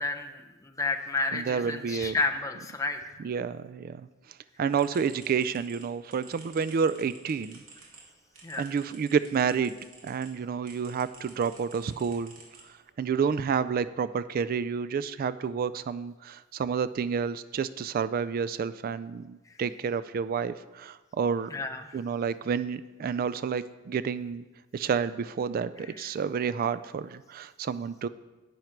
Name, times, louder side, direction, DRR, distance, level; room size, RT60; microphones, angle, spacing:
voice 1, 0.0-3.0 8.4-8.7 21.5-22.0 25.8-26.1, left 3 dB, 15° left, 4 dB, 0.7 m, -31 dB
voice 2, 1.3-2.2 3.2-4.1 4.6-7.6 8.6-9.7 10.0-12.3 13.0-21.5 21.9-24.4 24.7-28.1, right 6 dB, 45° right, 15 dB, 0.3 m, -29 dB
sound 1, 4.7-10.3 10.6-13.0, right 3 dB, 80° right, 2.6 m, -52 dB
10.5 x 9.3 x 4.5 m, 1.2 s
head